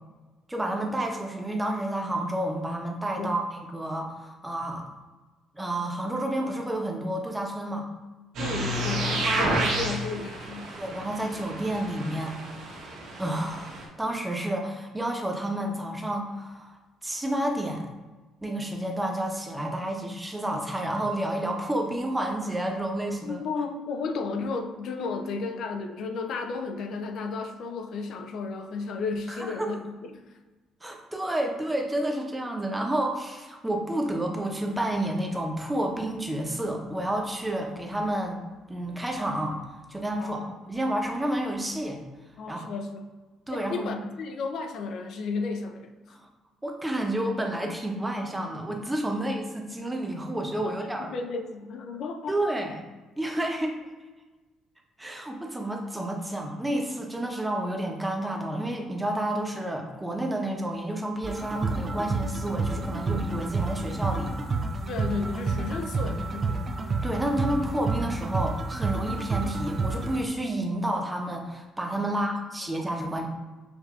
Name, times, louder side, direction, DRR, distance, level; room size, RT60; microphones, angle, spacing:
voice 1, 0.5-4.9 5.5-7.9 9.0-9.5 10.7-12.4 13.2-16.8 17.0-17.9 18.4-23.4 29.3-29.7 30.8-38.4 38.7-39.6 39.9-40.4 40.7-42.0 42.5-42.6 43.5-44.0 46.6-51.1 52.3-52.7 53.2-53.8 55.0-64.3 67.0-73.3, right 1 dB, 10° right, 2 dB, 0.9 m, -30 dB
sound 1, 8.3-13.8, right 1 dB, 75° right, 1.3 m, -31 dB
voice 2, 8.4-10.6 23.2-30.2 40.2-40.5 42.4-43.1 43.5-46.2 50.6-52.4 64.9-66.6 72.0-72.4, left 4 dB, 65° left, 6 dB, 0.5 m, -33 dB
sound 2, 61.2-70.2, right 3 dB, 35° right, 0.5 m, -30 dB
6.5 x 2.7 x 2.4 m, 1.2 s
supercardioid pair, 70°, 0 cm